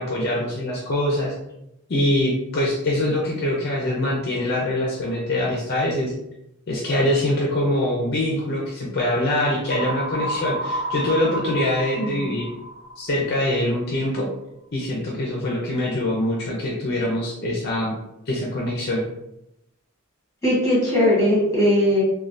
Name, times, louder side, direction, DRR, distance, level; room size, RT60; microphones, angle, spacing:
voice 1, 0.0-1.3 1.9-6.1 6.7-12.5 13.0-14.3 14.7-17.9 18.3-19.0, left 1 dB, 50° left, -3 dB, 0.4 m, -24 dB
sound 1, 9.7-13.6, right 1 dB, 35° right, 0.8 m, -30 dB
voice 2, 12.0-12.3 20.4-22.0, left 1 dB, 15° left, -6 dB, 1.1 m, -19 dB
3.1 x 2.2 x 2.5 m, 0.84 s
head